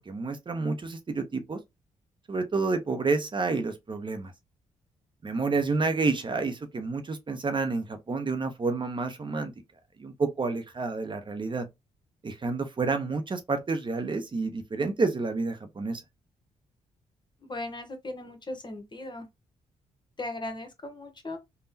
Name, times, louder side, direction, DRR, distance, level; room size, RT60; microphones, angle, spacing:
voice 1, 0.0-1.6 2.3-4.3 5.2-9.5 10.0-11.7 12.2-16.0, right 3 dB, 35° right, 0.7 m, -29 dB
voice 2, 17.4-19.3 20.2-21.4, left 2 dB, 30° left, 1.0 m, -37 dB
3.5 x 2.2 x 2.7 m
supercardioid pair, 50°, 14 cm